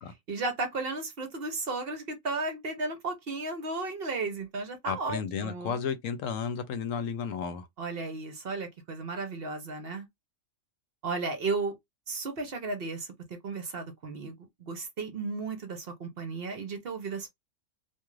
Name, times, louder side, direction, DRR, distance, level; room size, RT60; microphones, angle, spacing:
voice 1, 0.3-5.8 7.8-10.1 11.0-11.8 12.1-14.3 14.6-17.3, right 3 dB, 55° right, 0.8 m, -34 dB
voice 2, 4.8-7.7, left 6 dB, 75° left, 1.0 m, -33 dB
2.5 x 2.4 x 3.0 m
omnidirectional pair, 1.4 m